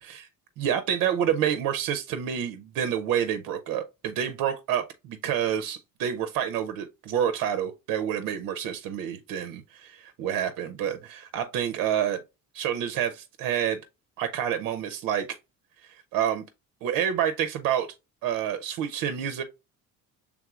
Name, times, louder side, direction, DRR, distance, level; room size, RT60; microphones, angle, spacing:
voice 1, 0.6-12.2 12.5-13.8 14.2-15.3 16.1-16.4 16.8-17.9 18.2-19.4, right 9 dB, 70° right, 0.6 m, -28 dB
6.0 x 3.5 x 2.3 m
cardioid pair, 155°, 34 cm